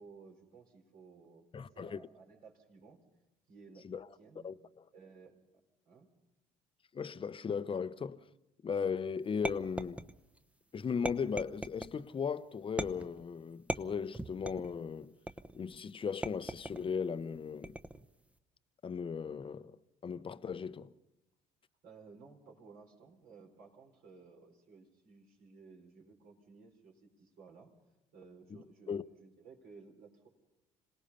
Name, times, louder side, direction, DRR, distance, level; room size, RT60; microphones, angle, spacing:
voice 1, 0.0-3.0 3.5-4.5 4.9-6.1 21.8-27.7 28.1-30.3, right 4 dB, 65° right, 4.5 m, -57 dB
voice 2, 1.5-2.0 3.8-4.1 4.4-4.8 6.9-8.2 8.6-10.0 10.7-15.1 15.5-17.8 18.8-19.8 20.0-20.9 28.9-29.0, left 6 dB, 30° left, 0.8 m, -37 dB
sound 1, 9.4-10.4 11.0-12.0 12.8-13.2 13.7-14.7 15.3-15.7 16.2-16.9 17.6-18.1, right 1 dB, 10° right, 0.9 m, -39 dB
26.5 x 18.5 x 5.6 m
hypercardioid pair, 65°, 17 cm